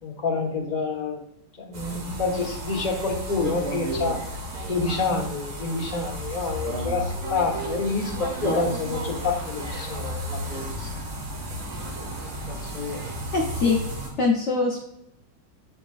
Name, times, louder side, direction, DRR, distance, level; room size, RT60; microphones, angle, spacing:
voice 1, 0.0-1.2 1.6-4.2 4.7-10.9 12.5-13.0, left 3 dB, 30° left, -2 dB, 1.0 m, -28 dB
sound 1, 1.7-14.1, right 1 dB, 85° right, 2.3 m, -32 dB
voice 2, 13.3-13.8 14.2-14.8, left 4 dB, 60° left, -3 dB, 0.7 m, -22 dB
9.3 x 4.3 x 2.4 m, 0.78 s
omnidirectional pair, 2.3 m